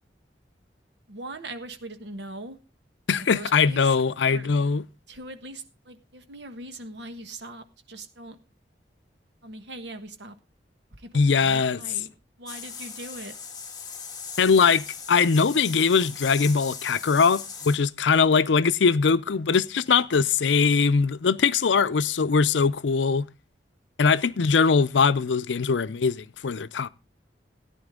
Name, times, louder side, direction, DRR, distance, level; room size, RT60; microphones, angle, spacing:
voice 1, 1.1-2.6 3.1-4.0 4.3-4.5 5.1-8.4 9.4-10.3 10.9-11.1 11.4-12.1 12.4-13.3, right 2 dB, 70° right, 1.4 m, -40 dB
voice 2, 3.1-4.8 11.1-11.8 14.4-23.3 24.0-26.9, left 5 dB, 85° left, 0.5 m, -21 dB
sound 1, 12.5-17.8, left 6 dB, 20° left, 1.8 m, -39 dB
14.0 x 10.0 x 3.7 m
head